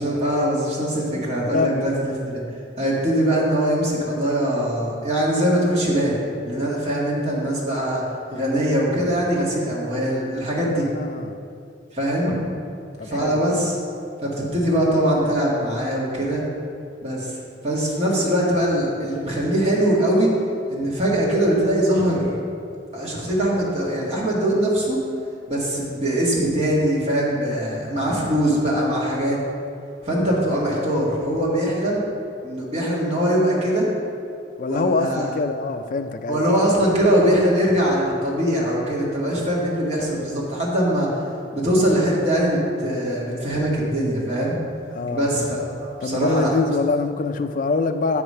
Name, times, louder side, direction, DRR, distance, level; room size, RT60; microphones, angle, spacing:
voice 1, 0.0-1.9 2.3-2.4 2.8-6.2 6.4-8.0 8.3-10.9 11.9-12.4 13.0-13.8 14.2-16.4 17.0-17.4 17.6-20.3 20.7-22.3 22.9-25.0 25.5-29.4 30.0-32.0 32.4-33.9 34.7-35.3 36.3-41.1 41.5-44.6 45.1-46.5, right 1 dB, 35° right, -5 dB, 1.7 m, -22 dB
voice 2, 1.5-2.1 10.6-11.4 13.0-13.6 34.6-36.4 44.9-45.5 46.0-48.2, left 3 dB, 45° left, 7 dB, 0.3 m, -24 dB
7.7 x 4.9 x 5.5 m, 2.4 s
head